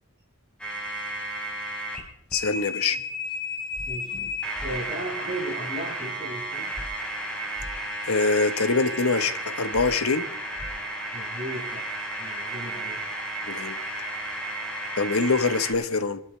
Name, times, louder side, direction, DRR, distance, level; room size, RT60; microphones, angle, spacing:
sound 1, 0.6-2.0 2.3-15.7, right 1 dB, 5° left, 4.1 m, -33 dB
voice 1, 2.3-3.0 8.0-10.3 13.5-13.8 15.0-16.2, left 4 dB, 85° left, 9 dB, 1.3 m, -24 dB
sound 2, 3.7-3.9 4.6-4.7 6.7-6.9 7.6-7.7 9.7-9.9 10.6-10.7, equal, 20° left, 2.2 m, -38 dB
voice 2, 3.9-4.3 4.6-6.7 11.1-13.0, right 1 dB, 35° right, -7 dB, 5.7 m, -36 dB
27.0 x 12.0 x 3.3 m, 0.69 s
head